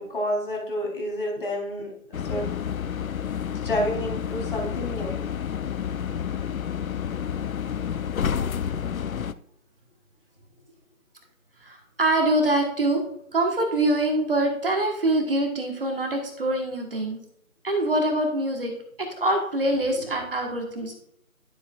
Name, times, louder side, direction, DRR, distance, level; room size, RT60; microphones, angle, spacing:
voice 1, 0.0-1.9 2.3-2.6 3.6-5.1, equal, 35° left, -2 dB, 3.6 m, -29 dB
sound 1, 2.1-9.3, left 8 dB, 70° left, 0.6 m, -29 dB
voice 2, 11.6-13.0 13.3-17.2 17.6-21.0, right 1 dB, 40° right, 2 dB, 1.4 m, -24 dB
11.5 x 7.7 x 2.4 m, 0.71 s
figure-of-eight pair, 160°, 43 cm